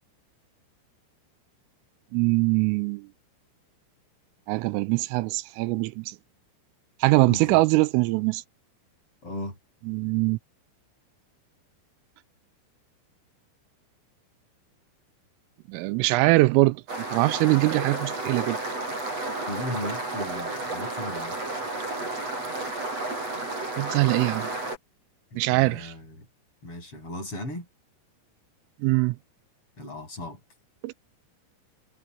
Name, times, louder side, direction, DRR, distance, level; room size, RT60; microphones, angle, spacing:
voice 1, 2.1-3.1 4.5-6.2 7.0-8.4 9.9-10.4 15.7-18.6 23.8-24.5 25.4-25.9 28.8-29.2 30.8-30.9, right 22 dB, 85° right, 3.2 m, -23 dB
voice 2, 7.2-7.6 9.2-9.6 19.5-21.4 25.3-26.3 26.6-27.7 29.8-30.4, left 1 dB, 25° left, 8.5 m, -36 dB
sound 1, 16.9-24.8, right 2 dB, 30° right, 7.7 m, -32 dB
omnidirectional pair, 5.8 m